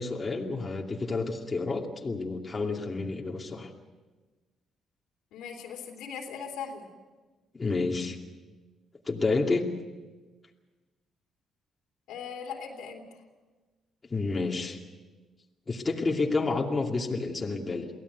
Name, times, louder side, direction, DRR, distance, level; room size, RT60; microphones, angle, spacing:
voice 1, 0.0-3.7 7.5-8.2 9.1-9.7 14.1-14.8 15.7-17.9, left 3 dB, 30° left, 0 dB, 2.6 m, -29 dB
voice 2, 5.3-6.9 12.1-13.2, left 6 dB, 90° left, 2 dB, 3.4 m, -39 dB
23.5 x 16.5 x 8.2 m, 1.3 s
cardioid pair, 90°, 0 cm